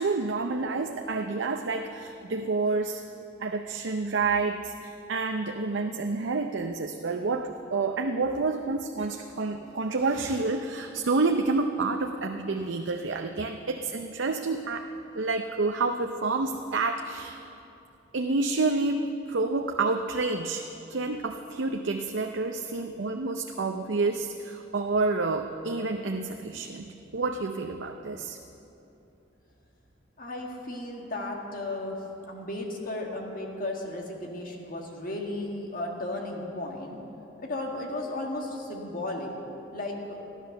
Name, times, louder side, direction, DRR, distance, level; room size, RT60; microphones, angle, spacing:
voice 1, 0.0-3.0 3.4-14.9 15.1-17.4 18.1-28.4, right 3 dB, 75° right, 4 dB, 0.6 m, -29 dB
voice 2, 30.2-32.0 32.3-37.0 37.4-39.3 39.7-40.2, left 2 dB, 50° left, 0 dB, 1.9 m, -34 dB
14.5 x 11.0 x 6.6 m, 2.9 s
head